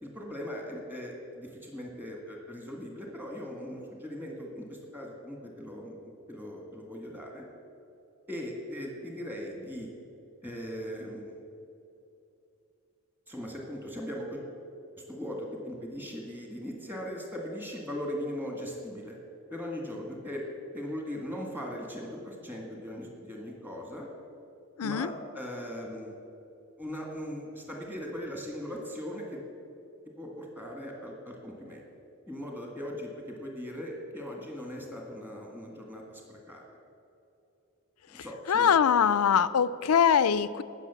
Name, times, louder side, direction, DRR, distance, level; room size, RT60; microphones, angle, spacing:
voice 1, 0.0-7.4 8.3-9.9 10.4-11.4 13.3-14.4 15.0-19.2 19.5-20.4 20.7-24.1 24.8-26.2 26.8-29.4 30.2-31.8 32.3-36.6 38.1-38.8, equal, 10° right, 0 dB, 1.8 m, -39 dB
voice 2, 24.8-25.1 38.5-40.6, left 7 dB, 90° left, 16 dB, 0.5 m, -23 dB
17.5 x 6.6 x 6.9 m, 2.8 s
head